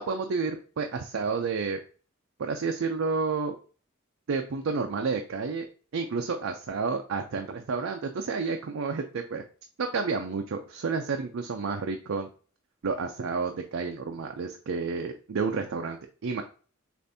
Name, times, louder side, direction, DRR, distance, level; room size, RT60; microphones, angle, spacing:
voice 1, 0.0-1.8 2.4-3.5 4.3-5.7 5.9-9.4 9.8-12.3 12.8-16.4, right 4 dB, 75° right, 4 dB, 0.4 m, -30 dB
6.7 x 2.5 x 2.6 m, 0.39 s
head